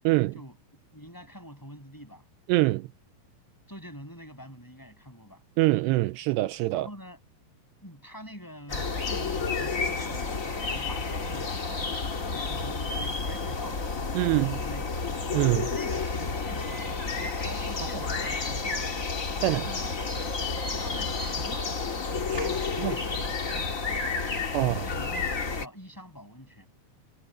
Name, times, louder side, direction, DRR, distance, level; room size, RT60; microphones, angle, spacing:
voice 1, 0.0-0.3 2.5-2.9 5.6-6.9 14.1-14.6 15.3-15.7 19.4-19.6 22.3-22.5 22.8-23.0 24.5-24.9, right 19 dB, 85° right, 2.6 m, -24 dB
voice 2, 0.9-2.3 3.7-5.4 6.7-7.2 7.8-15.4 15.7-19.0 19.4-19.9 20.8-22.0 22.3-24.1 24.5-26.7, equal, 5° left, 7.1 m, -46 dB
sound 1, 8.7-25.7, left 4 dB, 40° left, 1.1 m, -31 dB
omnidirectional pair, 5.1 m